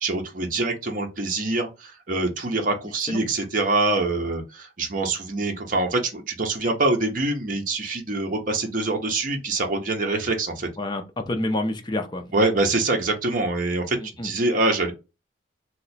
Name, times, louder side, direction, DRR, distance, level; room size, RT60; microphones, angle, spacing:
voice 1, 0.0-10.7 12.3-14.0 14.2-14.9, right 2 dB, 45° right, 0.6 m, -25 dB
voice 2, 3.0-3.3 10.8-12.3 14.0-14.3, left 1 dB, 25° left, 0.5 m, -29 dB
2.8 x 2.1 x 4.0 m
head